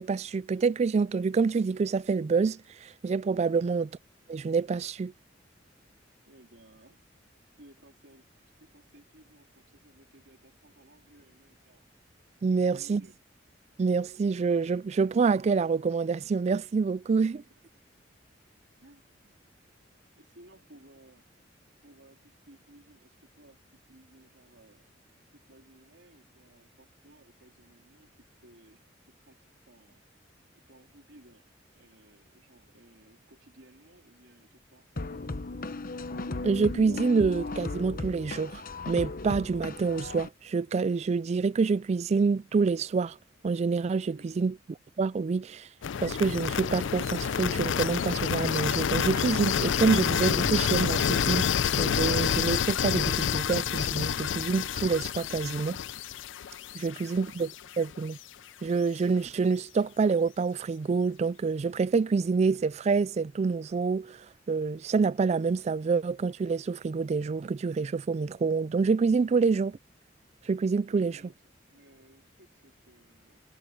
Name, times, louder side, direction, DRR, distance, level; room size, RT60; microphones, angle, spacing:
voice 1, 0.0-3.9 4.3-5.1 12.4-13.0 13.8-17.4 36.4-38.6 38.9-43.2 43.4-44.5 45.0-45.7 46.0-55.8 56.7-57.5 57.8-58.2 58.6-69.8 70.5-71.2, right 4 dB, 35° right, 0.3 m, -27 dB
voice 2, 6.3-7.0 7.6-11.9 12.5-13.1 18.8-19.4 20.1-21.2 21.8-24.9 25.3-28.8 29.2-30.0 30.5-35.7 44.1-44.5 55.3-55.7 56.8-57.4 70.9-73.4, right 1 dB, 70° right, 3.7 m, -58 dB
sound 1, 35.0-40.3, left 2 dB, 50° left, 1.0 m, -36 dB
sound 2, 45.8-57.7, left 8 dB, 80° left, 0.4 m, -28 dB
head